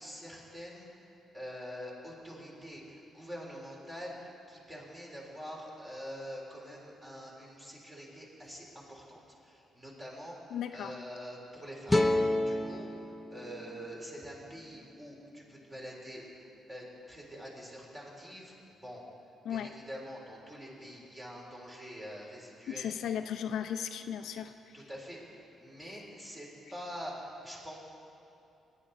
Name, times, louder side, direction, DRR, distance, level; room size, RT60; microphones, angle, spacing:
voice 1, 0.0-19.0 19.5-23.2 24.7-27.8, equal, 20° right, -3 dB, 3.7 m, -46 dB
voice 2, 10.5-10.9 19.5-19.7 22.7-24.7, left 9 dB, 75° left, 7 dB, 0.5 m, -36 dB
sound 1, 11.9-15.1, left 1 dB, 10° left, 0.8 m, -31 dB
19.0 x 9.9 x 4.2 m, 2.9 s
cardioid pair, 85°, 0 cm